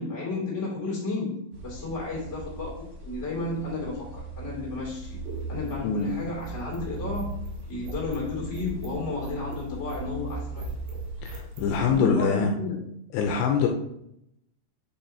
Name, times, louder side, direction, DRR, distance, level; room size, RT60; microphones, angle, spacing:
voice 1, 0.0-1.4 1.6-5.2 5.5-10.7 11.8-12.8, left 3 dB, 20° left, -4 dB, 2.5 m, -32 dB
sound 1, 1.5-11.9, right 1 dB, 45° right, 2.4 m, -38 dB
sound 2, 4.9-11.8, right 4 dB, 80° right, 3.5 m, -42 dB
voice 2, 5.8-6.1 11.2-12.5 13.1-13.7, left 5 dB, 85° left, 2 dB, 2.6 m, -24 dB
8.6 x 5.6 x 2.9 m, 0.76 s
omnidirectional pair, 5.2 m